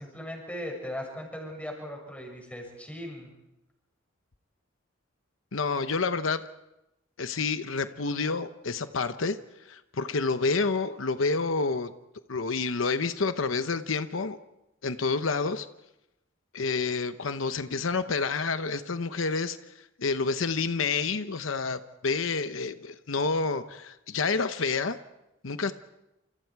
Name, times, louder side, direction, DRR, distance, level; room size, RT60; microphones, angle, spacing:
voice 1, 0.0-3.3, equal, 5° left, 1 dB, 6.7 m, -38 dB
voice 2, 5.5-6.4 7.2-9.4 9.7-11.9 12.3-14.4 14.8-15.7 16.5-25.0 25.4-25.7, left 4 dB, 85° left, 10 dB, 0.9 m, -29 dB
29.0 x 27.5 x 4.7 m, 0.91 s
head